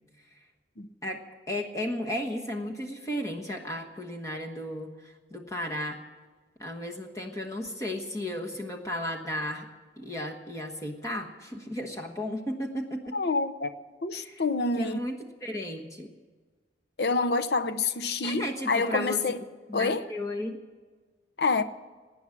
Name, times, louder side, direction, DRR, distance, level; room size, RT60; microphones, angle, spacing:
voice 1, 1.5-6.0 6.6-9.7 10.0-13.1 14.2-14.4 14.8-15.1 15.4-16.1 18.2-19.2 19.7-20.6, left 1 dB, 15° left, 1.3 m, -34 dB
voice 2, 13.1-13.7 14.0-15.0 17.0-19.4 19.7-20.1 21.4-21.6, left 3 dB, 65° left, 0.8 m, -27 dB
18.0 x 9.6 x 7.3 m
head